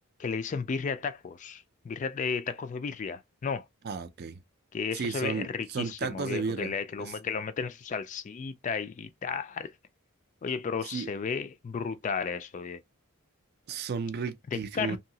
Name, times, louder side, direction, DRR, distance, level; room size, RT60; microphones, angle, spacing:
voice 1, 0.2-3.7 4.7-9.7 10.4-12.8 14.5-15.0, left 5 dB, 35° left, 0.3 m, -33 dB
voice 2, 3.8-4.4 4.9-6.7 7.0-7.1 10.9-11.1 13.7-15.0, right 5 dB, 45° right, 0.4 m, -33 dB
2.8 x 2.7 x 2.7 m
head